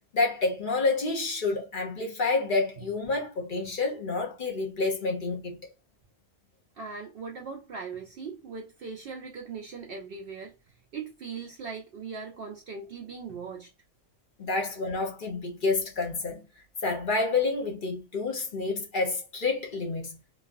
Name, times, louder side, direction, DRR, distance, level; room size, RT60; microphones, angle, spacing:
voice 1, 0.1-5.6 14.4-16.4 16.8-20.2, left 3 dB, 50° left, 0.8 m, -28 dB
voice 2, 6.8-13.7, right 5 dB, 60° right, 0.6 m, -40 dB
3.1 x 2.3 x 2.4 m
omnidirectional pair, 1.3 m